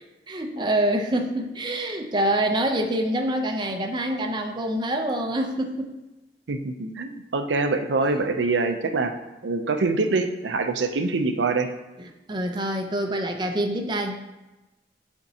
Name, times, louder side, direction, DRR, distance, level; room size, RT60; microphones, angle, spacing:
voice 1, 0.3-6.0 12.3-14.2, right 1 dB, 25° right, 3 dB, 0.6 m, -26 dB
voice 2, 6.5-9.2 9.4-11.7, right 3 dB, 90° right, 7 dB, 0.6 m, -24 dB
9.5 x 4.4 x 2.8 m, 1.0 s
head